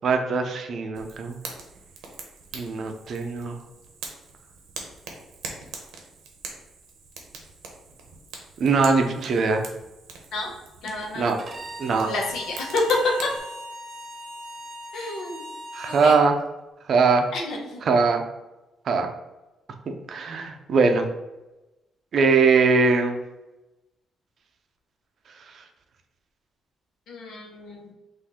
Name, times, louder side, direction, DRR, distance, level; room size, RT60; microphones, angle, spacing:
voice 1, 0.0-1.4 2.5-3.6 8.6-9.7 11.1-11.4 11.8-12.1 15.7-16.4 16.9-17.2 17.8-18.2 18.9-19.1 19.9-21.1 22.1-23.2, right 4 dB, 60° right, 5 dB, 0.6 m, -21 dB
Fire, 0.9-13.4, right 4 dB, 90° right, 0.9 m, -42 dB
voice 2, 10.8-11.4 12.1-13.1 14.9-15.4 15.8-16.1 17.3-17.8 27.1-27.9, left 2 dB, 70° left, 0 dB, 1.1 m, -28 dB
Bowed string instrument, 11.4-16.3, equal, 35° right, 0.9 m, -39 dB
4.3 x 2.6 x 4.3 m, 1.0 s
cardioid pair, 90°, 0 cm